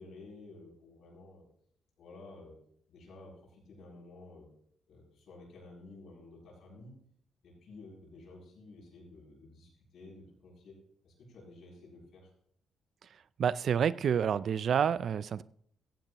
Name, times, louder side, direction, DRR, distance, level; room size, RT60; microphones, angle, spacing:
voice 1, 0.0-1.4 2.0-2.6 2.9-4.5 4.9-6.9 7.4-10.8 11.0-12.3, left 2 dB, 60° left, -3 dB, 7.3 m, -52 dB
voice 2, 13.4-15.4, right 8 dB, 50° right, 17 dB, 0.4 m, -28 dB
16.0 x 15.0 x 3.0 m, 0.66 s
cardioid pair, 140°, 0 cm